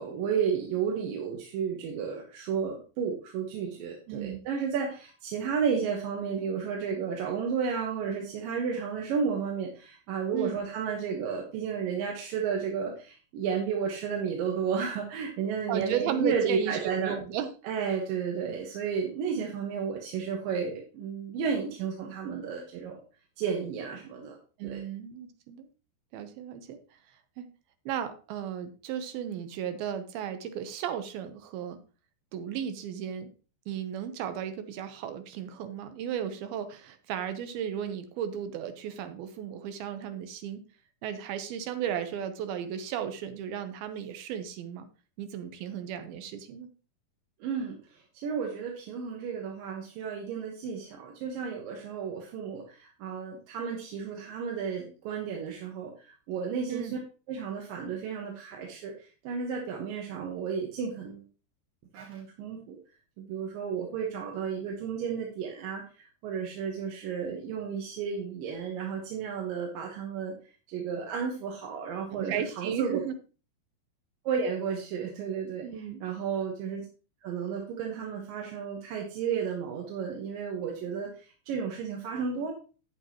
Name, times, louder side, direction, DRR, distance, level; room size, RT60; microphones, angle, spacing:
voice 1, 0.0-17.2 17.6-23.0 23.4-24.4 24.6-24.8 47.4-47.8 48.2-57.0 57.3-61.2 61.9-62.8 63.2-70.3 70.7-73.0 74.2-76.9 77.2-82.5, right 6 dB, 70° right, 0 dB, 2.9 m, -32 dB
voice 2, 4.1-4.4 10.3-10.6 15.7-17.5 24.6-25.7 26.1-26.8 27.4-27.5 27.9-31.8 32.3-33.3 33.7-40.6 41.0-44.9 45.2-46.7 56.7-57.0 72.1-73.1 75.6-76.0, right 9 dB, 90° right, 9 dB, 2.9 m, -35 dB
9.3 x 8.8 x 3.0 m, 0.36 s
omnidirectional pair, 4.2 m